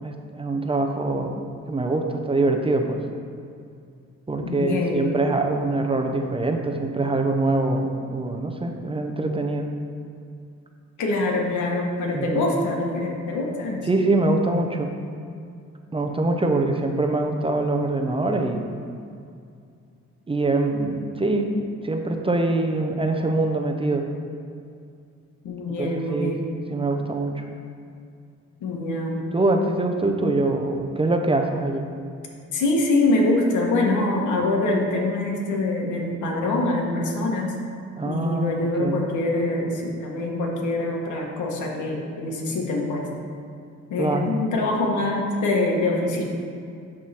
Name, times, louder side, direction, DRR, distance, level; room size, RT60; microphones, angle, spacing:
voice 1, 0.0-1.4 1.7-3.0 4.3-9.7 12.1-12.5 13.8-14.9 15.9-18.6 20.3-24.1 25.8-26.4 26.7-27.4 29.3-31.9 38.0-39.0 44.0-44.4, right 2 dB, 20° right, 3 dB, 0.7 m, -24 dB
voice 2, 4.4-5.1 11.0-13.9 25.4-26.5 28.6-29.2 32.5-37.5 38.0-43.1 43.9-46.2, left 2 dB, 75° left, -1 dB, 1.5 m, -24 dB
11.0 x 3.7 x 4.4 m, 2.4 s
cardioid pair, 90°, 30 cm